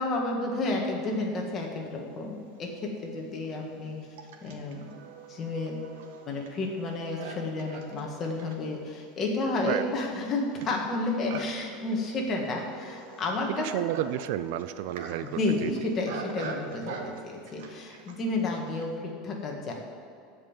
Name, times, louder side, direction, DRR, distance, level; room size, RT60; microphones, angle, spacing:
voice 1, 0.0-4.0 4.4-4.9 5.3-5.8 6.2-13.8 15.2-19.7, left 2 dB, 25° left, 0 dB, 1.7 m, -31 dB
Livestock farm animals working animals, 2.2-2.3 3.0-18.9, right 5 dB, 85° right, 1.4 m, -44 dB
voice 2, 13.5-15.7, right 13 dB, 60° right, 13 dB, 0.4 m, -31 dB
15.5 x 5.4 x 7.3 m, 2.5 s
supercardioid pair, 175°, 0 cm